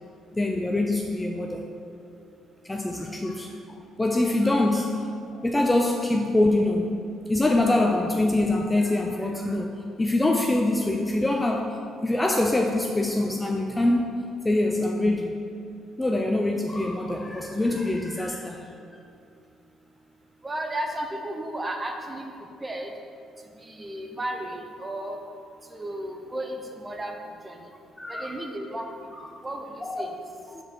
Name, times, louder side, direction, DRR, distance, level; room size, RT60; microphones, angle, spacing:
voice 1, 0.3-1.6 2.6-5.1 5.4-7.0 7.3-9.7 10.0-11.7 12.0-14.2 14.4-15.4 16.0-18.7 28.0-28.4 29.1-29.2 29.8-30.2 30.5-30.6, left 2 dB, 10° left, 1 dB, 0.4 m, -24 dB
voice 2, 20.4-22.3 22.6-22.9 23.6-25.2 25.7-27.1 27.4-27.6 28.1-28.9 29.4-30.1, right 1 dB, 15° right, 3 dB, 0.7 m, -33 dB
5.0 x 4.4 x 6.1 m, 2.5 s
cardioid pair, 115°, 0 cm